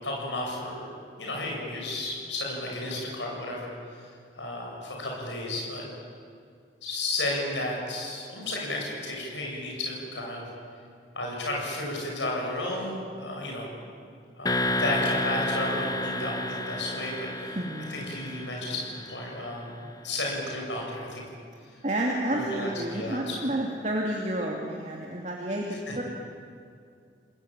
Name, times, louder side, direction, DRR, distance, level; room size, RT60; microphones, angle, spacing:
voice 1, 0.0-0.9 1.2-5.9 6.8-10.5 11.1-13.7 14.4-17.6 17.9-21.2 21.6-21.8 22.3-23.4 25.9-26.0, left 1 dB, 85° left, -1 dB, 7.8 m, -33 dB
sound 1, 14.4-19.4, left 1 dB, 20° left, 1.0 m, -31 dB
voice 2, 17.6-17.9 21.8-26.0, right 1 dB, 40° right, -1 dB, 2.7 m, -30 dB
30.0 x 20.0 x 9.0 m, 2.3 s
head